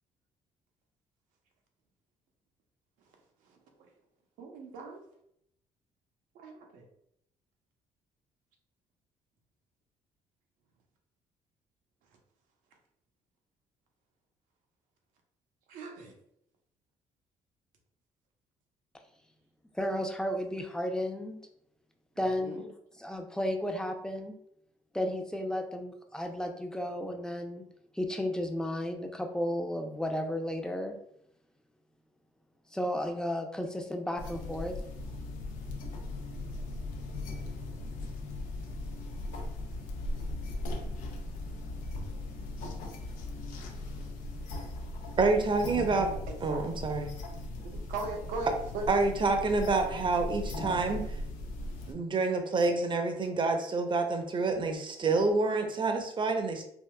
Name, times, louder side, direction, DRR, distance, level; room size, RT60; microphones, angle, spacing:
voice 1, 4.4-5.0 6.3-6.9 15.7-16.1 22.4-22.7 46.3-46.6 47.6-49.1, right 3 dB, 80° right, 2 dB, 0.7 m, -39 dB
voice 2, 19.7-21.4 22.2-22.6 23.0-24.4 24.9-27.7 27.9-30.9 32.7-34.8, left 1 dB, 5° left, 3 dB, 0.5 m, -33 dB
sound 1, 34.2-51.9, left 2 dB, 80° left, 0.6 m, -38 dB
voice 3, 45.2-46.1 46.4-47.1 48.9-51.2 51.9-56.6, right 3 dB, 35° right, 5 dB, 0.6 m, -28 dB
3.6 x 2.3 x 2.2 m, 0.74 s
supercardioid pair, 65°, 14 cm